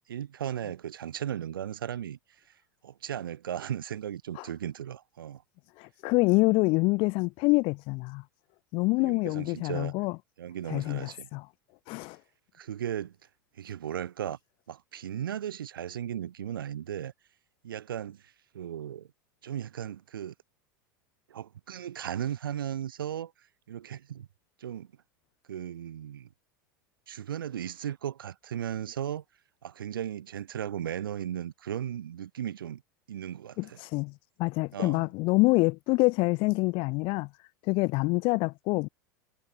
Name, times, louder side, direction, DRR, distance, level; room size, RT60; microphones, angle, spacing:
voice 1, 0.0-2.2 2.8-5.4 9.0-9.9 10.4-11.3 12.6-13.2 13.6-14.4 14.7-17.1 17.6-19.1 19.4-20.3 21.3-23.3 23.7-24.3 24.6-24.9 25.5-26.3 27.1-29.2 29.6-32.8 33.1-33.8 34.7-35.1, right 10 dB, 80° right, 0.5 m, -36 dB
voice 2, 5.8-8.2 8.7-10.2 10.7-11.5 11.9-12.2 33.6-34.1 34.4-37.3 37.6-38.9, left 26 dB, 50° left, 0.7 m, -26 dB
hypercardioid pair, 90°, 11 cm